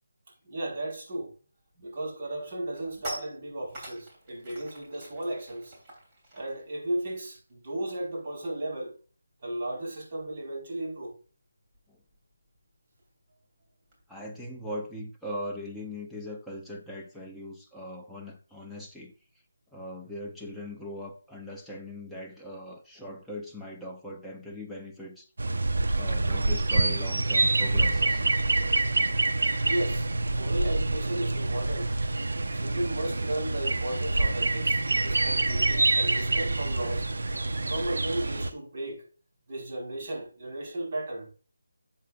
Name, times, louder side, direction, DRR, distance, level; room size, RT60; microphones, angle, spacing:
voice 1, 0.4-1.3 1.8-5.8 6.3-9.0 9.4-11.2 29.6-30.1 30.3-31.9 32.5-37.1 37.7-39.0 39.5-41.3, right 1 dB, 35° right, 4.8 m, -34 dB
sound 1, 1.7-1.9 2.3-8.2 8.5-8.7 9.0-14.0, right 1 dB, 20° right, 3.4 m, -47 dB
voice 2, 14.1-19.1 19.7-25.3 26.0-28.2, left 1 dB, ahead, 0.7 m, -40 dB
sound 2, 25.4-38.5, right 2 dB, 75° right, 1.0 m, -26 dB
11.5 x 7.5 x 2.5 m
figure-of-eight pair, 165°, 0 cm